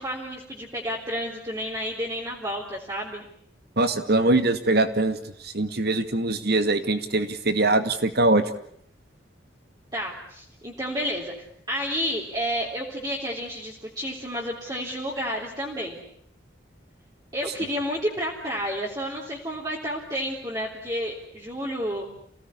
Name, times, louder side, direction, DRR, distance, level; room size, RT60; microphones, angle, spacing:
voice 1, 0.0-3.3 9.9-16.0 17.3-22.0, equal, 20° right, -4 dB, 3.6 m, -31 dB
voice 2, 3.8-8.4, right 2 dB, 50° right, 9 dB, 2.3 m, -22 dB
28.5 x 18.0 x 9.9 m, 0.68 s
head